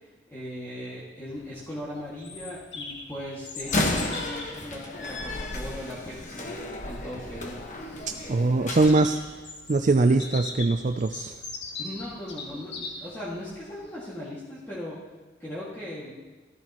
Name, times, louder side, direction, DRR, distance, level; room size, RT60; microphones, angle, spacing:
voice 1, 0.3-6.5 6.8-7.6 11.8-15.0 15.4-16.1, left 1 dB, 15° left, -9 dB, 2.1 m, -38 dB
Bird vocalization bird call bird song, 1.3-14.0, left 3 dB, 70° left, 1.9 m, -41 dB
Slam, 3.6-9.0, left 2 dB, 45° left, 1.4 m, -32 dB
voice 2, 8.3-9.2 9.7-11.3, right 3 dB, 45° right, 7 dB, 0.4 m, -22 dB
15.5 x 14.0 x 3.0 m, 1.2 s
head